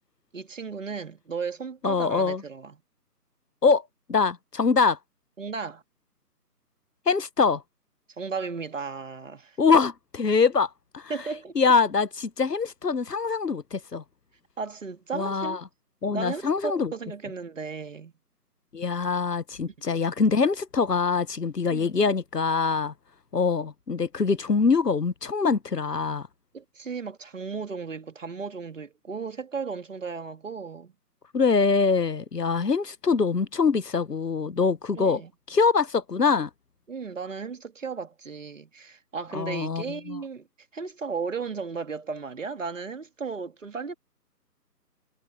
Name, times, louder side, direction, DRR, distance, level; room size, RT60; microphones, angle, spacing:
voice 1, 0.3-2.8 5.4-5.8 8.2-9.6 11.1-11.7 14.6-15.6 16.1-18.1 19.7-19.8 21.7-22.0 26.5-30.9 34.9-35.3 36.9-40.5 40.7-43.9, right 5 dB, 50° right, 2.4 m, -35 dB
voice 2, 1.8-2.4 3.6-3.8 4.1-5.0 7.1-7.6 9.6-11.1 11.5-14.0 15.1-15.6 16.0-16.9 18.7-22.9 23.3-26.3 31.3-35.2 35.5-36.5 39.3-40.2, left 5 dB, 75° left, 1.2 m, -24 dB
figure-of-eight pair, 150°, 48 cm